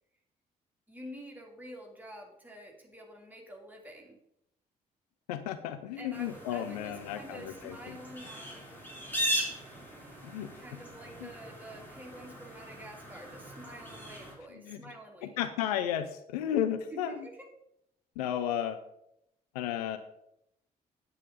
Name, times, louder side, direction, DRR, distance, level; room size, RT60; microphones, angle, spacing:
voice 1, 0.9-4.2 6.0-8.8 10.6-15.4 16.9-17.3, right 1 dB, 10° right, 0 dB, 2.7 m, -48 dB
voice 2, 5.3-8.0 10.2-10.8 11.2-11.3 14.5-14.9 15.2-17.3 18.2-18.8 19.5-20.0, left 10 dB, 70° left, 9 dB, 0.6 m, -34 dB
sound 1, 6.1-14.3, equal, 10° left, 3.6 m, -39 dB
8.6 x 8.3 x 3.8 m, 0.79 s
figure-of-eight pair, 40°, 20 cm